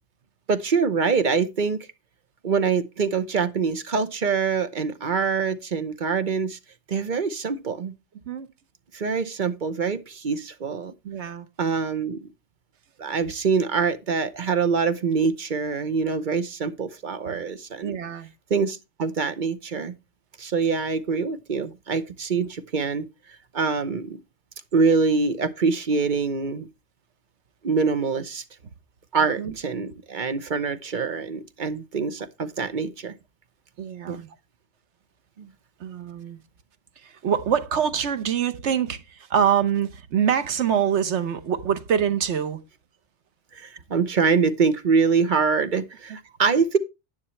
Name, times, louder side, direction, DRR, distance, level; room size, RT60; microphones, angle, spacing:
voice 1, 0.5-1.8 2.4-6.6 6.9-7.9 8.9-10.9 11.6-12.3 13.0-18.0 18.5-19.9 20.4-23.1 23.5-24.2 24.7-26.7 27.6-28.4 29.1-33.1 34.1-34.2 35.4-35.5 43.5-46.8, right 5 dB, 45° right, 0.9 m, -24 dB
voice 2, 11.0-11.5 17.3-17.4 17.8-18.3 29.4-29.5 33.8-34.3 35.8-36.4 37.0-42.6, right 8 dB, 80° right, 1.2 m, -25 dB
9.8 x 9.7 x 3.2 m
omnidirectional pair, 1.2 m